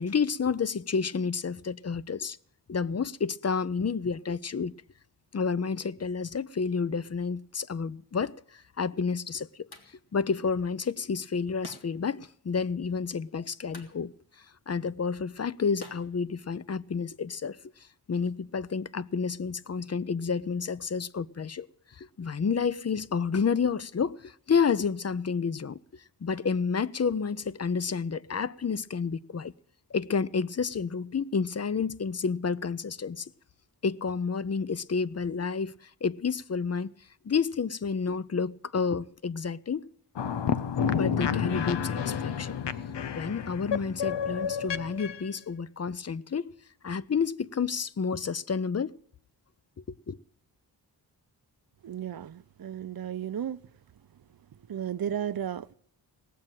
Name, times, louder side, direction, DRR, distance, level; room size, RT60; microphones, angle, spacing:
voice 1, 0.0-2.4 2.7-4.7 5.3-9.7 10.1-17.6 18.1-29.5 29.9-33.3 33.8-36.9 37.2-39.9 40.9-42.6 43.1-46.5 46.8-48.9 50.1-50.2, left 5 dB, 40° left, 0.6 m, -30 dB
sound 1, 8.5-17.0, left 2 dB, 65° left, 2.3 m, -54 dB
sound 2, 40.2-45.3, left 7 dB, 85° left, 0.7 m, -30 dB
voice 2, 51.8-53.6 54.7-55.7, right 9 dB, 60° right, 0.6 m, -34 dB
18.5 x 7.6 x 9.1 m
wide cardioid pair, 60°, 41 cm